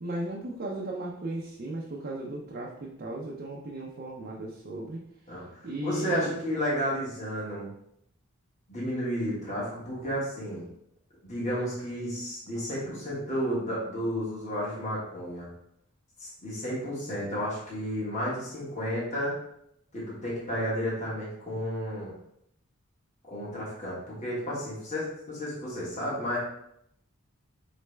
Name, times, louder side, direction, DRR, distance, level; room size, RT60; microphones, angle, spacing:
voice 1, 0.0-5.0 5.6-6.3, right 1 dB, 45° right, -2 dB, 0.5 m, -36 dB
voice 2, 5.3-7.7 8.7-10.7 11.2-15.5 16.2-19.3 19.9-22.1 23.3-26.4, equal, 35° left, -7 dB, 1.4 m, -32 dB
4.0 x 3.2 x 3.3 m, 0.73 s
head